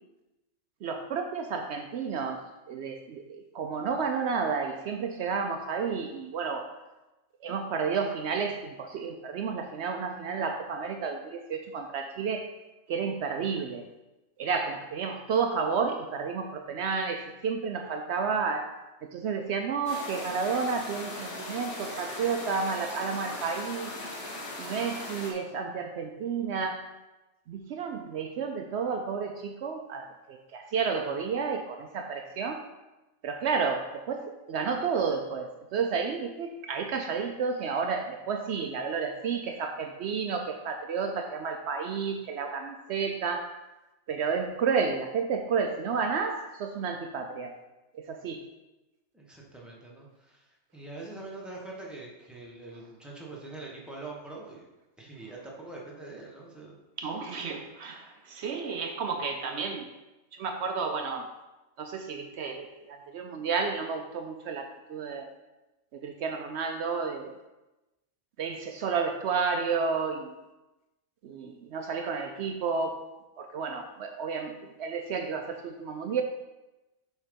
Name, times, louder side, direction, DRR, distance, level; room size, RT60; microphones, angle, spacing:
voice 1, 0.8-6.7 7.4-12.5 12.9-13.9 14.4-18.7 19.0-23.9 24.6-26.9 27.5-32.6 33.2-43.6 44.1-47.6 47.9-48.4 57.0-59.9 60.3-61.3 61.8-65.3 65.9-67.4 68.4-70.3 71.2-73.1 73.4-76.2, right 5 dB, 70° right, 5 dB, 0.8 m, -31 dB
sound 1, 19.9-25.3, left 2 dB, 85° left, 1.6 m, -39 dB
voice 2, 49.1-54.7 55.0-56.8, right 2 dB, ahead, -3 dB, 1.1 m, -44 dB
7.3 x 3.7 x 5.1 m, 1.0 s
omnidirectional pair, 1.2 m